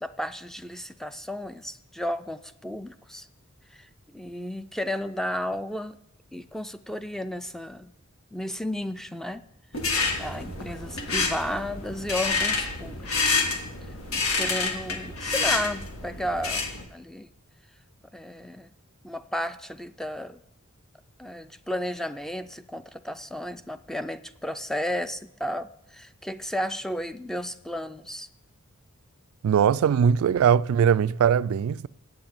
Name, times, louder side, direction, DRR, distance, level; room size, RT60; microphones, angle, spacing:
voice 1, 0.0-3.3 3.7-6.0 6.3-7.9 8.3-9.4 10.2-13.4 14.1-17.3 18.1-18.7 19.0-20.4 21.2-28.3, equal, ahead, 0.4 m, -33 dB
sound 1, 9.7-16.8, left 4 dB, 80° left, 1.7 m, -28 dB
voice 2, 29.4-31.9, right 8 dB, 75° right, 0.3 m, -21 dB
7.8 x 7.8 x 8.8 m
head